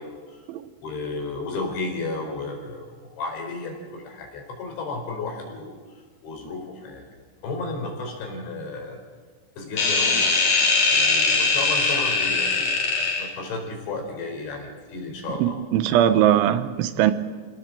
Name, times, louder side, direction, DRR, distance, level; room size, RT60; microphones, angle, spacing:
voice 1, 0.0-0.4 0.8-2.8 3.2-5.7 6.2-7.0 7.4-9.0 9.6-10.4 10.9-15.6, left 3 dB, 75° left, 1 dB, 6.8 m, -33 dB
sound 1, 9.8-13.3, left 4 dB, 45° left, 3.5 m, -21 dB
voice 2, 15.4-17.1, right 11 dB, 90° right, 11 dB, 3.5 m, -20 dB
27.5 x 18.0 x 7.6 m, 1.5 s
omnidirectional pair, 5.2 m